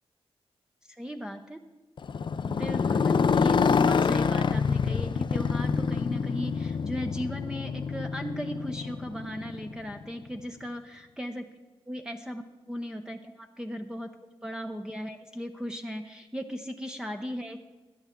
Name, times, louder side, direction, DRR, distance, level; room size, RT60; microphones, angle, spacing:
voice 1, 0.8-1.6 2.5-11.5 11.9-12.4 12.7-14.1 14.4-17.6, equal, 5° right, 4 dB, 0.7 m, -37 dB
Motorcycle, 2.0-10.0, left 5 dB, 50° left, 0.5 m, -26 dB
17.0 x 10.5 x 3.7 m, 1.2 s
cardioid pair, 70°, 10 cm